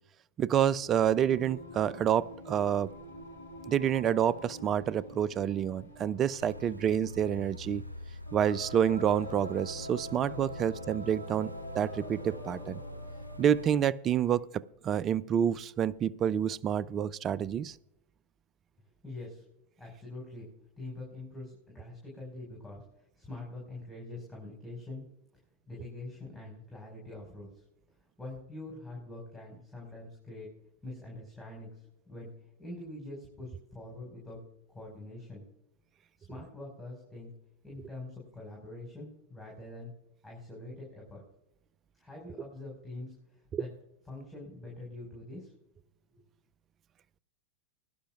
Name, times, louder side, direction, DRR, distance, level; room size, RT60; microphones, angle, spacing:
voice 1, 0.4-2.9 3.7-7.8 8.3-12.8 13.4-17.7 43.5-43.6, right 9 dB, 30° right, 21 dB, 0.4 m, -28 dB
Singing, 0.7-13.9, equal, 75° left, 3.1 m, -46 dB
sound 1, 6.4-13.7, left 1 dB, 85° right, 0.4 m, -45 dB
voice 2, 19.0-19.4 19.8-20.5 20.8-25.0 25.7-27.7 28.2-30.5 30.8-32.3 32.6-34.4 34.7-35.4 36.2-37.3 37.6-39.9 40.2-41.2 42.0-43.7 44.1-45.5, left 2 dB, 5° left, -3 dB, 5.4 m, -44 dB
21.5 x 11.5 x 2.5 m, 0.89 s
figure-of-eight pair, 90°, 0 cm